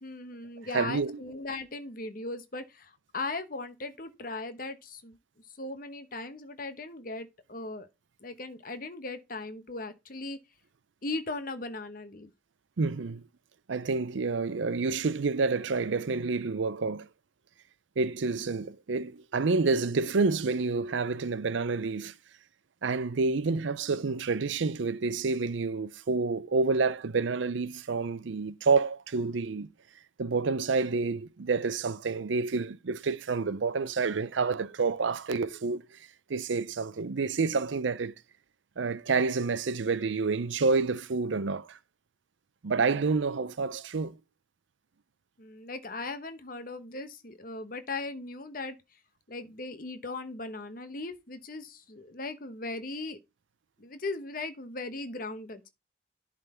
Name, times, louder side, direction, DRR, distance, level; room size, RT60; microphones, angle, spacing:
voice 1, 0.0-5.2 5.6-7.9 8.2-10.4 11.0-12.3 42.8-43.0 45.4-48.8 49.3-53.2 53.8-55.7, left 3 dB, 45° left, 1.0 m, -38 dB
voice 2, 0.7-1.2 12.8-13.2 13.7-17.1 18.0-22.1 22.8-29.7 30.2-38.1 38.8-41.8 42.6-44.2, right 4 dB, 70° right, 0.5 m, -28 dB
11.0 x 3.8 x 4.4 m
head